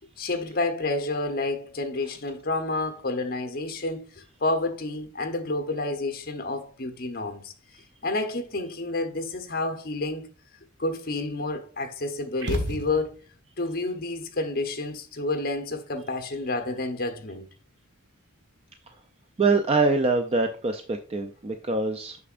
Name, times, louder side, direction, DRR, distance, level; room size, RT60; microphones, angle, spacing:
voice 1, 0.2-7.5 8.0-10.2 10.8-13.1 13.6-17.5, left 2 dB, 45° left, 1.0 m, -29 dB
sound 1, 12.4-13.4, equal, 55° right, 1.3 m, -31 dB
voice 2, 19.4-22.2, right 3 dB, 30° right, 0.4 m, -24 dB
6.7 x 6.0 x 2.5 m
head